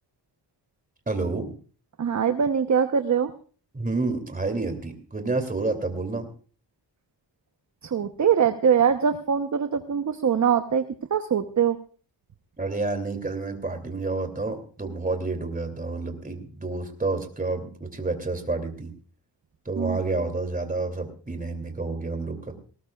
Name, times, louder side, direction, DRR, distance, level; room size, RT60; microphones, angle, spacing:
voice 1, 1.1-1.5 3.7-6.3 12.6-18.9 19.6-22.5, right 3 dB, 20° right, 6 dB, 2.8 m, -29 dB
voice 2, 2.0-3.3 7.8-10.8 11.1-11.8 19.8-20.0, right 7 dB, 40° right, 8 dB, 0.9 m, -22 dB
19.0 x 18.5 x 2.4 m, 0.40 s
cardioid pair, 90°, 42 cm